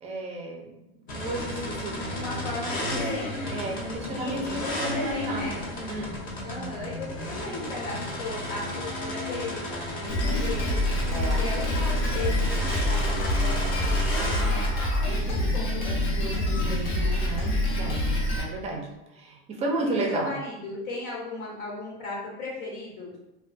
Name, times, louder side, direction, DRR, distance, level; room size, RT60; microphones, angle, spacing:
voice 1, 0.0-0.8 1.2-2.0 2.9-3.0 3.5-5.6 5.9-6.2 11.1-11.4 16.9-18.0 18.4-20.4, right 2 dB, 20° right, 1 dB, 0.4 m, -32 dB
sound 1, 1.1-14.7, left 1 dB, 30° left, 0.5 m, -33 dB
voice 2, 2.1-3.3 4.1-5.6 6.4-10.8 11.3-17.3 19.8-23.1, left 2 dB, 75° left, -4 dB, 1.2 m, -36 dB
Drum kit, 10.1-18.4, left 1 dB, 55° left, 0.9 m, -26 dB
2.4 x 2.2 x 2.4 m, 0.94 s
supercardioid pair, 130°, 31 cm